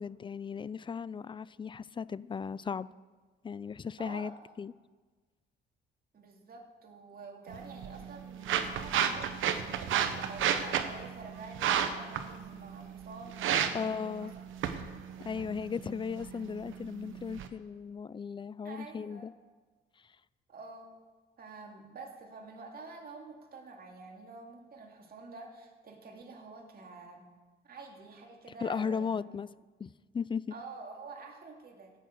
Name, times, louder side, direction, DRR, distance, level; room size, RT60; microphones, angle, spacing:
voice 1, 0.0-2.9 3.4-4.3 4.6-4.7 13.7-14.3 15.2-19.3 28.6-29.5 29.8-30.5, left 6 dB, 25° left, 20 dB, 0.4 m, -36 dB
voice 2, 4.0-4.4 6.1-14.3 18.6-19.3 20.5-21.0 21.4-27.3 27.6-29.2 30.5-31.9, right 4 dB, 50° right, 2 dB, 2.5 m, -48 dB
sound 1, 7.5-17.5, right 9 dB, 80° right, 1.0 m, -33 dB
16.0 x 6.6 x 7.6 m, 1.4 s
cardioid pair, 90°, 20 cm